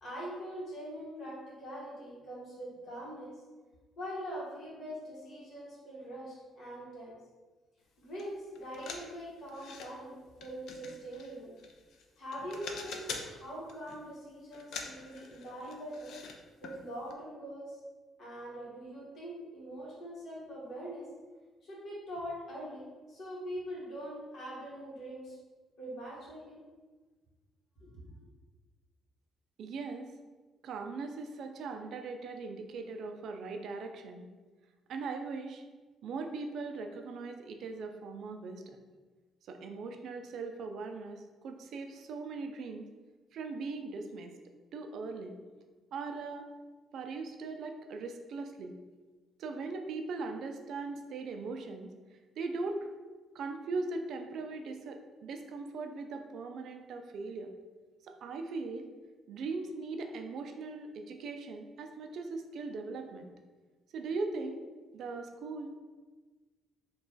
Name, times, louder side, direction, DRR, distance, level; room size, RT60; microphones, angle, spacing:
voice 1, 0.0-3.3 4.0-7.1 8.0-11.5 12.2-16.1 16.6-17.8 18.2-21.1 21.6-25.4 25.8-26.6 27.8-28.2, equal, 55° left, -6 dB, 1.4 m, -43 dB
sound 1, 8.2-8.3 8.6-9.9 10.4-12.0 12.3-13.4 13.7-14.1 14.5-16.4 16.6-16.8 17.1-17.2, left 5 dB, 75° left, 0.4 m, -44 dB
voice 2, 29.6-30.2 30.6-34.3 34.9-35.6 36.0-38.8 39.5-42.9 43.3-44.4 44.7-45.4 45.9-46.5 46.9-48.7 49.4-51.9 52.4-52.9 53.3-57.5 58.0-58.9 59.3-63.3 63.9-64.6 64.9-65.8, right 3 dB, 70° right, 5 dB, 0.4 m, -39 dB
3.1 x 2.3 x 3.8 m, 1.3 s
cardioid pair, 95°, 0 cm